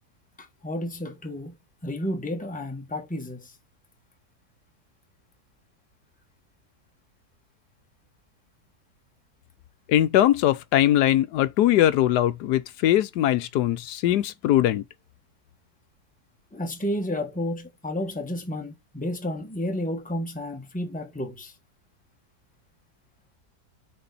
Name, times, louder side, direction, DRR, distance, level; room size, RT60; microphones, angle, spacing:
voice 1, 0.4-3.5 16.5-21.5, left 1 dB, 5° left, 1.0 m, -31 dB
voice 2, 9.9-14.8, left 12 dB, 80° left, 1.2 m, -21 dB
6.7 x 4.4 x 4.0 m
omnidirectional pair, 1.8 m